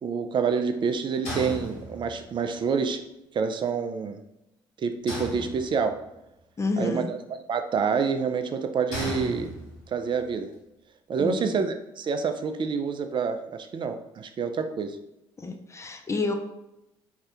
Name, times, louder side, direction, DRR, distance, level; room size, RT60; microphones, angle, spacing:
voice 1, 0.0-3.0 3.3-4.2 4.8-5.9 6.8-7.2 7.5-9.5 9.9-10.5 11.1-15.0, right 5 dB, 40° right, 7 dB, 0.4 m, -27 dB
sound 1, 1.2-2.3 5.1-6.1 8.9-10.0, right 1 dB, 75° left, 1.2 m, -35 dB
voice 2, 6.6-7.1 11.2-11.6 15.4-16.3, left 3 dB, 25° left, 5 dB, 0.5 m, -29 dB
2.7 x 2.4 x 3.3 m, 0.88 s
hypercardioid pair, 55°, 12 cm